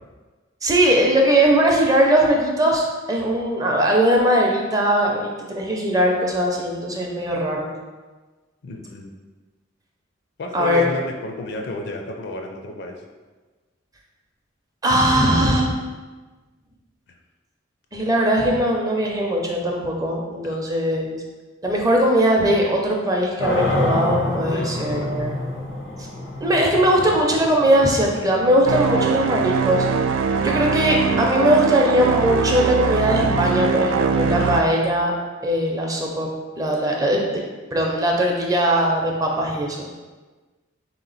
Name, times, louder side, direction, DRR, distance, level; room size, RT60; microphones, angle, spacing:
voice 1, 0.6-7.7 10.5-10.9 14.8-15.7 17.9-21.2 21.6-25.3 26.4-29.9 30.4-35.1 35.4-36.3 36.6-37.4 37.7-39.9, right 1 dB, 20° right, 0 dB, 0.5 m, -20 dB
voice 2, 8.6-9.1 10.4-13.0 17.1-17.2 20.4-20.6 24.5-25.1 27.0-27.1 31.1-31.4 32.8-33.3 33.6-33.7 34.3-34.5 37.8-37.9, left 2 dB, 60° left, 2 dB, 0.5 m, -32 dB
sound 1, 23.4-30.3, left 1 dB, 90° left, 0.9 m, -28 dB
sound 2, 28.7-34.6, right 5 dB, 80° right, 0.3 m, -22 dB
3.6 x 2.9 x 3.9 m, 1.3 s
head